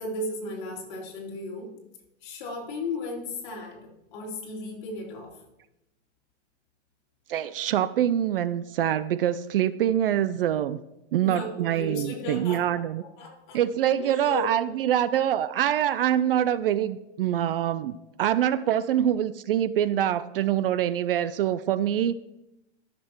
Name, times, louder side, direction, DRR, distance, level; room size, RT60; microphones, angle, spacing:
voice 1, 0.0-1.7 2.2-5.4 11.2-13.6 14.0-14.5, left 2 dB, 40° left, -2 dB, 3.2 m, -35 dB
voice 2, 7.3-10.8 11.1-13.0 13.5-22.2, right 11 dB, 50° right, 15 dB, 0.4 m, -25 dB
13.5 x 6.8 x 4.4 m, 0.92 s
supercardioid pair, 170°, 36 cm